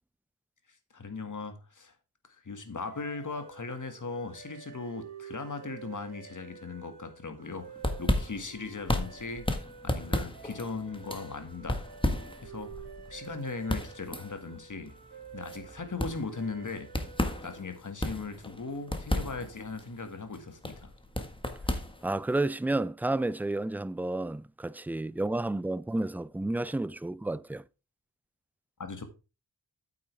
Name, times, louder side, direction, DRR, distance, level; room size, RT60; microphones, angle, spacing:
voice 1, 0.9-1.9 2.4-7.7 8.0-9.5 9.8-11.8 12.4-12.8 13.1-14.9 15.3-16.9 17.4-20.9 28.8-29.0, left 4 dB, 50° left, 2.0 m, -38 dB
sound 1, 2.8-17.9, right 6 dB, 80° right, 3.3 m, -49 dB
sound 2, 7.5-22.4, left 1 dB, 10° left, 1.6 m, -34 dB
voice 2, 22.0-27.6, right 2 dB, 5° right, 0.3 m, -31 dB
8.5 x 8.5 x 3.5 m
cardioid pair, 60°, 40 cm